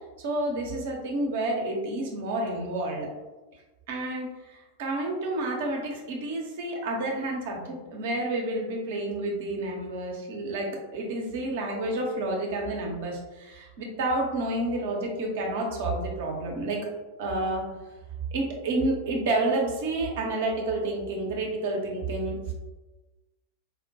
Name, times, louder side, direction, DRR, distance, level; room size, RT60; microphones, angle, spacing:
voice 1, 0.2-3.1 3.9-16.8 17.2-17.6 18.3-22.5, right 2 dB, 55° right, 0 dB, 0.7 m, -30 dB
4.0 x 2.1 x 2.7 m, 1.2 s
figure-of-eight pair, 90°, 0 cm